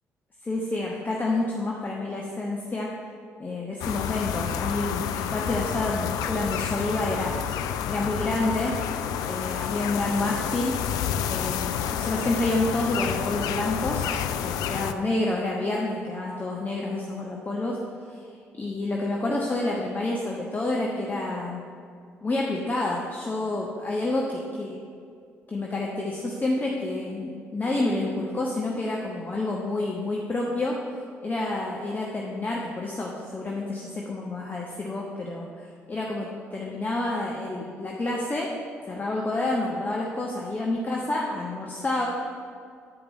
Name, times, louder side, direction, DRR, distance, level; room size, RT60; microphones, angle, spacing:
voice 1, 0.4-2.9 3.4-7.4 7.9-8.7 9.2-10.8 11.3-14.1 14.4-17.8 18.1-18.2 18.6-21.6 22.2-24.8 25.5-30.8 31.2-38.5 38.9-42.1, left 2 dB, 25° left, -2 dB, 1.2 m, -29 dB
sound 1, 3.8-14.9, left 9 dB, 60° left, 0.4 m, -29 dB
9.9 x 5.1 x 6.3 m, 2.2 s
figure-of-eight pair, 45°, 7 cm